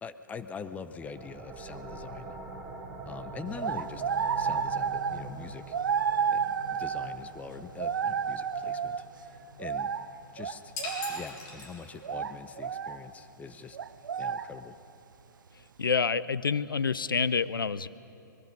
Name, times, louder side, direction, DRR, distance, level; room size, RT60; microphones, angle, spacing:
voice 1, 0.0-2.4 3.0-4.0 4.3-5.8 6.3-9.9 10.3-10.7 11.1-13.8 14.2-14.8, left 5 dB, 15° left, 11 dB, 0.7 m, -43 dB
sound 1, 1.0-12.4, right 2 dB, 25° right, 4.6 m, -45 dB
sound 2, 3.6-5.3 5.7-7.2 7.8-9.0 9.6-10.0 10.4-11.3 12.0-13.0 13.7-14.5, right 7 dB, 65° right, 0.7 m, -31 dB
sound 3, 10.8-12.2, left 3 dB, 30° left, 3.6 m, -40 dB
voice 2, 15.8-17.9, left 5 dB, 75° left, 17 dB, 0.6 m, -27 dB
23.5 x 21.0 x 5.3 m, 2.8 s
figure-of-eight pair, 115°, 11 cm